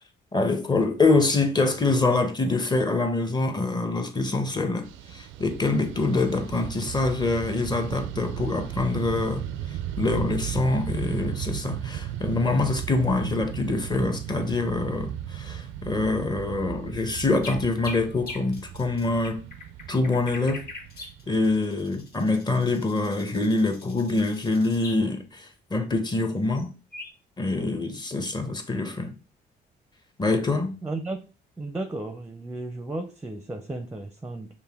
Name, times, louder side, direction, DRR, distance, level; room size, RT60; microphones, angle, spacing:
voice 1, 0.3-9.5 10.0-19.4 19.9-20.7 21.3-26.7 27.4-29.2 30.2-30.8, left 3 dB, 20° left, 0.8 m, -25 dB
Fixed-wing aircraft airplane, 4.8-22.3, right 11 dB, 85° right, 0.4 m, -36 dB
sound 1, 17.0-25.0 26.5-26.7 26.9-27.1, left 2 dB, 50° left, 1.4 m, -42 dB
voice 2, 30.8-31.2 31.6-34.5, right 2 dB, 10° right, 0.5 m, -34 dB
5.6 x 2.1 x 3.5 m
cardioid pair, 90°, 20 cm